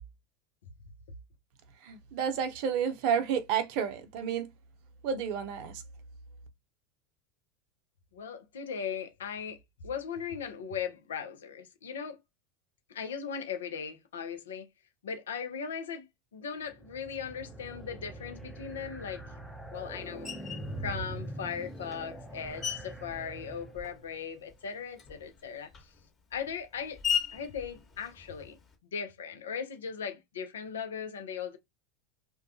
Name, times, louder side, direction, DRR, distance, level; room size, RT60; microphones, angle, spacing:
voice 1, 1.8-4.5 5.0-5.7, right 7 dB, 55° right, 0.6 m, -30 dB
voice 2, 8.1-9.6 9.8-12.2 12.9-14.7 15.0-16.1 16.3-19.2 19.7-20.3 20.8-25.7 26.3-27.0 27.3-28.6 28.9-31.6, left 7 dB, 75° left, 0.5 m, -38 dB
sound 1, 16.7-24.1, right 1 dB, 5° right, 0.5 m, -43 dB
Screech, 20.2-20.7 21.5-24.2 24.5-28.8, left 8 dB, 30° left, 1.1 m, -38 dB
2.3 x 2.1 x 2.6 m
hypercardioid pair, 85°, 0 cm